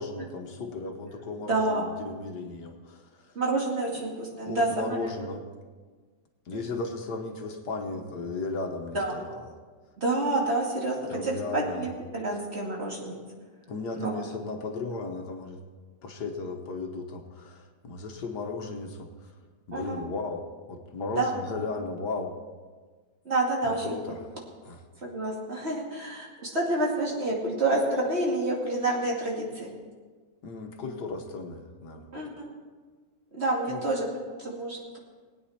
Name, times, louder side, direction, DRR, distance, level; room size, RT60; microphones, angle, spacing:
voice 1, 0.0-3.4 4.5-5.4 6.5-9.5 11.1-11.9 13.7-15.6 16.0-19.4 19.7-22.3 23.6-24.3 24.6-24.8 30.4-32.1 33.6-33.8, left 3 dB, 70° left, 3 dB, 1.7 m, -35 dB
voice 2, 1.5-1.8 3.3-5.1 6.5-6.8 8.9-9.1 10.0-13.2 13.9-14.3 19.7-20.0 21.1-21.3 23.2-24.0 25.0-29.7 32.1-32.5 33.3-34.0 34.4-35.0, right 2 dB, 35° right, -3 dB, 2.6 m, -28 dB
20.5 x 9.2 x 4.3 m, 1.5 s
omnidirectional pair, 1.9 m